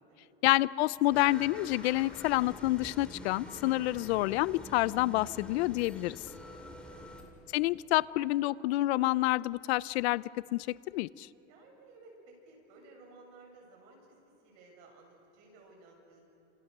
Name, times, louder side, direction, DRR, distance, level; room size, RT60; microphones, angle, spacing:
voice 1, 0.4-6.2 7.5-10.2 10.5-10.7 10.9-11.3, left 18 dB, 60° left, 20 dB, 0.6 m, -28 dB
sound 1, 1.1-7.2, left 1 dB, 5° left, 2.6 m, -47 dB
voice 2, 11.5-16.3, right 3 dB, 50° right, 0 dB, 7.8 m, -57 dB
30.0 x 27.5 x 6.7 m, 2.9 s
supercardioid pair, 160°, 36 cm